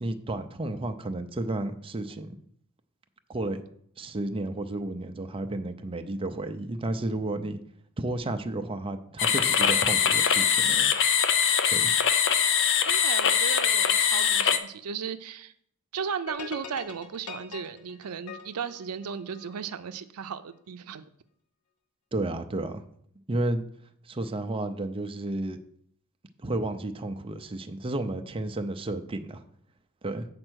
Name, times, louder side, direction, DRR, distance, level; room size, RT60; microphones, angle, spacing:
voice 1, 0.0-2.3 3.3-3.6 4.0-7.6 8.0-10.9 11.7-11.9 22.1-22.8 23.3-23.6 24.1-25.6 26.4-29.4 30.0-30.3, right 2 dB, 25° right, 7 dB, 0.5 m, -32 dB
sound 1, 9.2-14.6, left 8 dB, 55° left, 0.6 m, -23 dB
voice 2, 12.9-15.5 15.9-21.1, right 6 dB, 85° right, 10 dB, 0.5 m, -35 dB
sound 2, 16.3-19.6, left 5 dB, 75° left, 1.0 m, -42 dB
7.7 x 4.4 x 6.2 m, 0.65 s
head